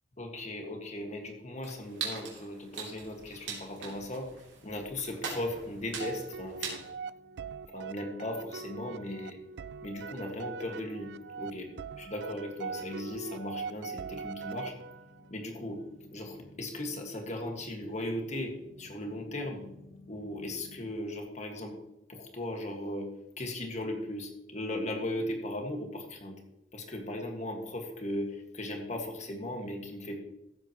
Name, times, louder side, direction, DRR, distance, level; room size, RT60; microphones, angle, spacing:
voice 1, 0.2-4.3 4.6-6.9 7.7-9.4 9.8-11.1 11.4-14.7 15.3-15.8 16.1-19.7 20.1-21.8 22.1-23.1 23.4-26.4 26.7-30.2, left 1 dB, 40° left, 3 dB, 1.8 m, -37 dB
sound 1, 1.6-6.9, right 5 dB, 85° right, 3.1 m, -41 dB
sound 2, 5.8-20.9, left 1 dB, 80° left, 2.7 m, -58 dB
sound 3, 6.0-15.3, right 5 dB, 65° right, 0.4 m, -42 dB
15.0 x 8.3 x 3.1 m, 0.88 s
head